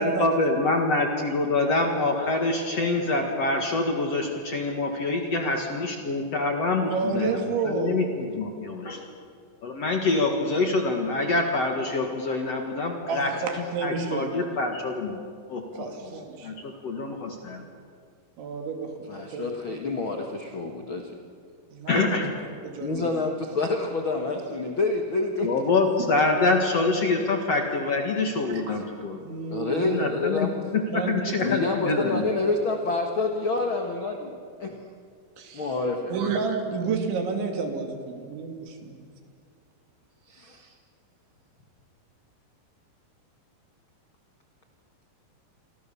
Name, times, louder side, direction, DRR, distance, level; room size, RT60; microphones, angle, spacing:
voice 1, 0.0-9.0 9.6-15.2 15.5-16.1 16.4-17.6 21.9-22.3 25.4-29.2 29.8-32.3, left 3 dB, 50° left, 2 dB, 2.1 m, -26 dB
voice 2, 6.9-8.1 13.1-14.4 15.8-16.5 18.4-19.5 21.7-22.2 22.6-23.1 28.7-28.8 29.2-29.9 30.9-31.5 35.4-35.7 36.1-39.0, right 4 dB, 85° right, 4 dB, 4.9 m, -30 dB
voice 3, 19.1-21.1 22.8-25.5 29.5-30.5 31.4-34.3 34.6-34.8 35.5-36.1 40.3-40.7, left 3 dB, 65° left, 3 dB, 1.2 m, -28 dB
28.5 x 25.0 x 7.1 m, 2.2 s
omnidirectional pair, 5.2 m